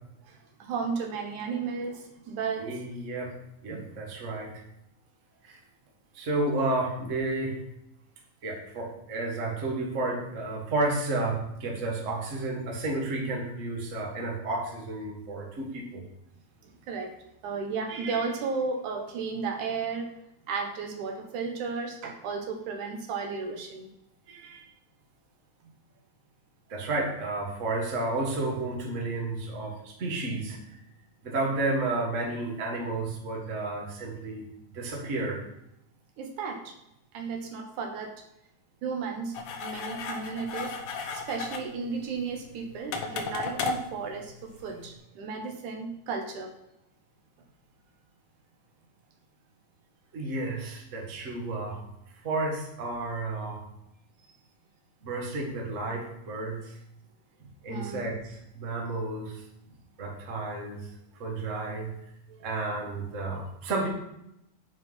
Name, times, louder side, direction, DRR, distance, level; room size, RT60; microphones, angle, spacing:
voice 1, 0.2-2.8 3.7-3.9 16.6-17.1 17.4-20.1 20.5-23.9 24.3-24.7 25.6-25.7 36.2-36.7 37.1-38.2 38.8-40.8 41.1-46.5 57.7-58.1 62.3-62.4, right 5 dB, 80° right, 2 dB, 2.6 m, -34 dB
voice 2, 2.6-4.5 5.4-5.6 6.1-7.6 8.4-16.0 26.7-30.6 31.2-34.4 34.7-35.4 50.1-51.8 52.2-53.6 55.0-56.7 57.6-59.4 60.0-60.9 61.2-62.0 62.4-63.9, right 2 dB, 30° right, -1 dB, 1.6 m, -31 dB
sound 1, 39.3-44.9, left 4 dB, 70° left, 1.9 m, -36 dB
9.4 x 4.7 x 5.5 m, 0.82 s
omnidirectional pair, 3.5 m